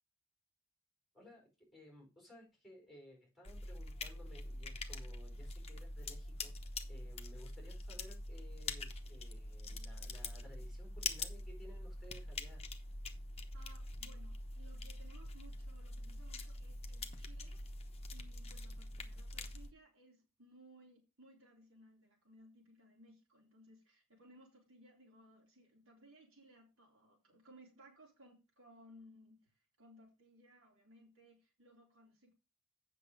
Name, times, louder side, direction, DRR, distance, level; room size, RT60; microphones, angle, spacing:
voice 1, 1.1-12.7, equal, ahead, 0 dB, 4.6 m, -58 dB
sound 1, 3.4-19.7, left 2 dB, 30° left, 1.0 m, -44 dB
voice 2, 13.5-17.7 18.1-29.4 29.8-32.3, right 1 dB, 70° right, 0 dB, 3.7 m, -62 dB
8.4 x 6.6 x 5.0 m, 0.28 s
head